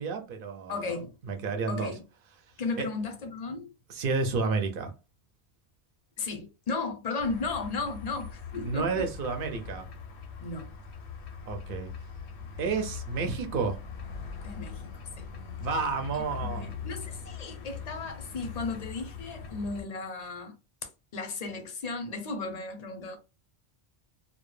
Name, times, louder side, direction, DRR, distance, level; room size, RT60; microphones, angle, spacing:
voice 1, 0.0-1.0 1.3-1.9 2.8-2.9 3.9-4.9 8.5-9.9 11.5-11.9 12.6-13.8 15.6-16.7, right 4 dB, 60° right, 0.7 m, -31 dB
voice 2, 0.7-1.4 1.7-2.0 2.6-3.7 6.2-9.1 10.4-10.7 14.4-14.9 15.2-15.3 16.1-20.6 21.1-23.2, left 3 dB, 50° left, 0.5 m, -35 dB
sound 1, 7.2-19.8, left 6 dB, 80° left, 0.9 m, -41 dB
2.1 x 2.1 x 3.1 m
omnidirectional pair, 1.1 m